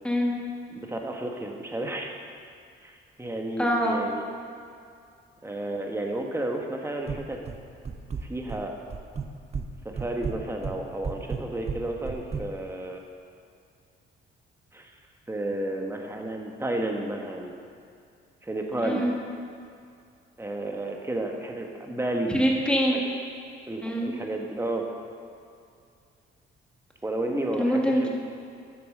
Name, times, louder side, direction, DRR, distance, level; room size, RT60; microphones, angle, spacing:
voice 1, 0.0-0.3 3.6-4.0 18.8-19.2 22.3-23.0 23.8-24.1 27.6-28.1, equal, 5° left, -2 dB, 1.7 m, -24 dB
voice 2, 0.7-2.2 2.8-4.2 5.4-7.4 8.3-8.7 9.8-13.0 14.7-14.9 15.3-17.5 18.4-19.1 20.4-22.3 22.9-23.1 23.7-24.9 27.0-28.1, right 1 dB, 15° right, 2 dB, 1.3 m, -32 dB
sound 1, 7.1-7.6 7.8-8.6 8.9-9.7 9.9-12.4, right 5 dB, 30° right, 0.7 m, -33 dB
8.7 x 6.7 x 6.6 m, 2.4 s
cardioid pair, 90°, 20 cm